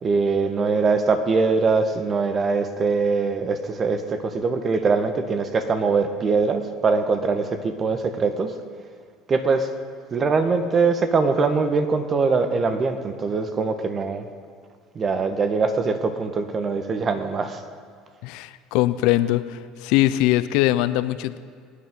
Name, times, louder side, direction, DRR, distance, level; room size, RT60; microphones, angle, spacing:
voice 1, 0.0-8.6 9.3-9.7 10.1-14.2 14.9-17.6, right 4 dB, 35° right, 8 dB, 1.4 m, -22 dB
voice 2, 18.2-21.4, left 15 dB, 70° left, 13 dB, 0.6 m, -21 dB
23.0 x 9.9 x 3.8 m, 2.1 s
hypercardioid pair, 75°, 0 cm